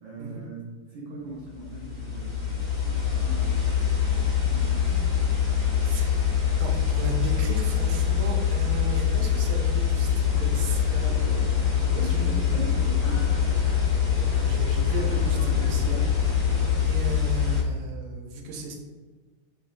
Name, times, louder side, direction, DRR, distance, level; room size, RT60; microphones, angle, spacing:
voice 1, 0.0-5.1 11.9-13.8, right 2 dB, 70° right, -5 dB, 1.3 m, -40 dB
sound 1, 1.5-17.6, left 8 dB, 15° right, 0.4 m, -24 dB
voice 2, 5.8-11.4 11.9-12.5 13.5-13.6 14.2-18.8, right 3 dB, 90° right, 2 dB, 1.5 m, -36 dB
sound 2, 10.2-16.8, equal, 75° left, 1.0 m, -37 dB
3.7 x 3.1 x 2.5 m, 1.4 s
omnidirectional pair, 2.4 m